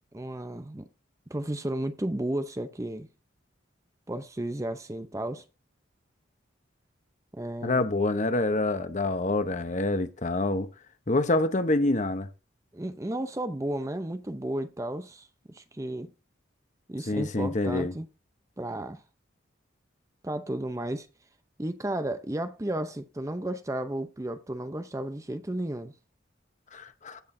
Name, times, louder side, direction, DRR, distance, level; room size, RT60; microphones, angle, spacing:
voice 1, 0.1-0.9 1.3-3.1 4.1-5.4 7.3-7.8 12.7-16.1 16.9-18.1 18.6-19.0 20.2-21.1 21.6-25.9, right 1 dB, 15° right, 0.6 m, -33 dB
voice 2, 7.6-10.7 11.1-12.3 17.1-17.9 26.7-27.2, left 2 dB, 40° left, 0.8 m, -26 dB
16.0 x 6.2 x 2.7 m
head